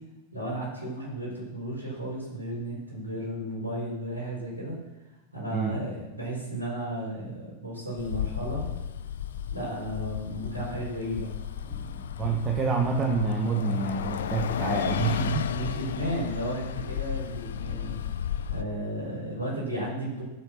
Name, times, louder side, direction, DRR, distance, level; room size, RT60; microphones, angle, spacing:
voice 1, 0.3-4.8 5.3-8.6 9.5-11.3 11.6-12.0 15.4-18.0 18.5-20.2, right 1 dB, 80° right, -6 dB, 4.6 m, -34 dB
Bus, 8.0-18.6, left 9 dB, 60° left, 0.5 m, -33 dB
voice 2, 12.2-15.5, right 4 dB, 25° right, 2 dB, 1.4 m, -27 dB
15.5 x 7.2 x 6.2 m, 1.1 s
figure-of-eight pair, 90°, 0 cm